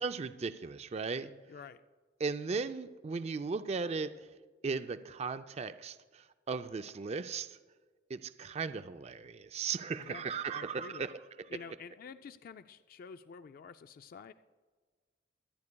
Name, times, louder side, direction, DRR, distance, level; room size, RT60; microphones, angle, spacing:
voice 1, 0.0-1.3 2.2-4.1 4.6-7.6 8.1-11.1 11.4-11.5, right 4 dB, 35° right, 11 dB, 0.4 m, -37 dB
voice 2, 1.5-1.8 10.0-11.1 11.5-14.3, left 6 dB, 55° left, 11 dB, 0.3 m, -49 dB
24.0 x 9.6 x 2.2 m, 1.4 s
head